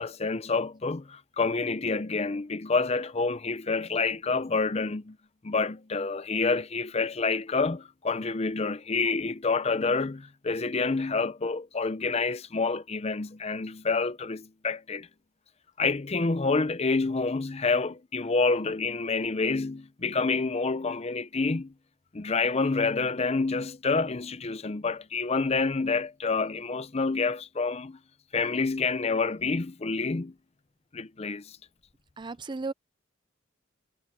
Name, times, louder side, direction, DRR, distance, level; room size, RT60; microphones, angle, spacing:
voice 1, 0.0-5.2 5.4-15.1 15.8-21.7 22.1-28.0 28.3-30.3 30.9-31.6, left 4 dB, 30° left, 0.6 m, -28 dB
voice 2, 32.2-32.7, right 3 dB, 20° right, 0.5 m, -34 dB
head